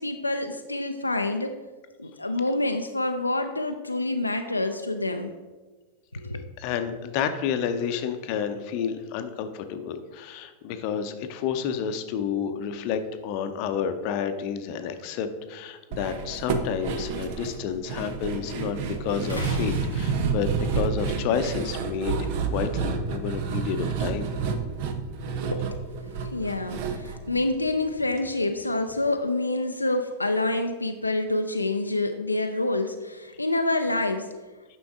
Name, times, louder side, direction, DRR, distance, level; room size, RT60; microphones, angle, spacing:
voice 1, 0.0-1.5 2.0-5.3 6.1-6.4 25.5-25.8 26.2-34.3, left 2 dB, 85° left, 5 dB, 0.4 m, -27 dB
voice 2, 6.6-24.3, left 7 dB, 45° left, 8 dB, 0.7 m, -30 dB
sound 1, 15.9-28.2 28.5-28.6 28.9-29.0, right 6 dB, 50° right, 0.8 m, -30 dB
sound 2, 19.3-20.6 21.9-22.0, left 3 dB, 85° right, 1.6 m, -35 dB
9.5 x 6.1 x 3.6 m, 1.3 s
figure-of-eight pair, 90°, 0 cm